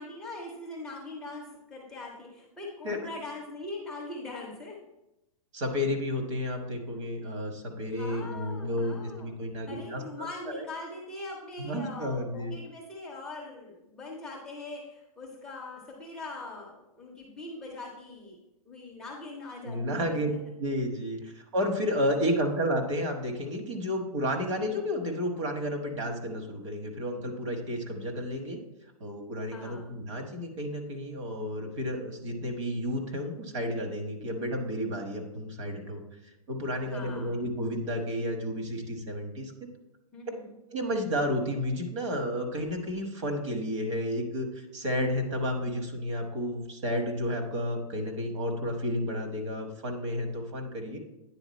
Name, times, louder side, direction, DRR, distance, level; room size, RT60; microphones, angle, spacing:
voice 1, 0.0-4.8 7.9-9.3 9.7-18.4 18.7-20.4 29.5-29.9 36.8-37.4 40.1-40.6, left 2 dB, ahead, -5 dB, 0.5 m, -42 dB
voice 2, 5.5-10.7 11.6-12.5 19.6-20.3 20.6-28.6 29.0-36.0 36.5-39.5 40.7-51.0, equal, 55° right, 4 dB, 1.3 m, -31 dB
9.2 x 3.8 x 4.1 m, 0.93 s
hypercardioid pair, 170°, 19 cm